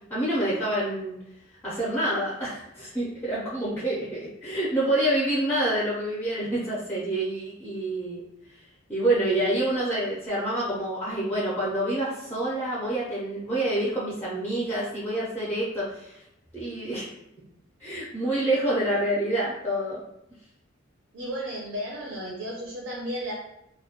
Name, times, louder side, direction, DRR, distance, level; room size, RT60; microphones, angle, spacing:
voice 1, 0.1-1.1 1.6-8.2 8.9-16.1 16.5-17.1 17.8-20.0, right 1 dB, 10° left, -6 dB, 0.4 m, -27 dB
voice 2, 21.1-23.3, equal, 75° right, -3 dB, 0.5 m, -33 dB
2.2 x 2.1 x 2.8 m, 0.79 s
head